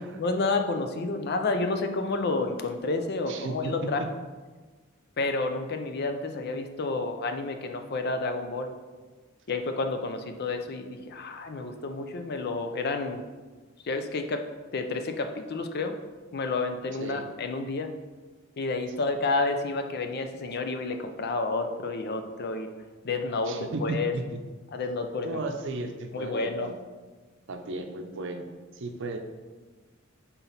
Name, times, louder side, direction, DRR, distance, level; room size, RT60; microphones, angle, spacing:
voice 1, 0.0-4.0 5.2-8.7 9.5-13.2 13.8-14.4 14.7-16.0 16.3-17.9 18.6-22.7 23.0-24.1 24.7-25.4 26.1-26.7, left 3 dB, 50° left, 6 dB, 0.5 m, -30 dB
voice 2, 3.3-3.7 4.0-4.1 17.0-17.3 19.0-19.1 23.5-24.4 25.2-26.8 27.5-29.2, right 2 dB, 65° right, 5 dB, 0.6 m, -35 dB
5.9 x 4.0 x 4.1 m, 1.3 s
head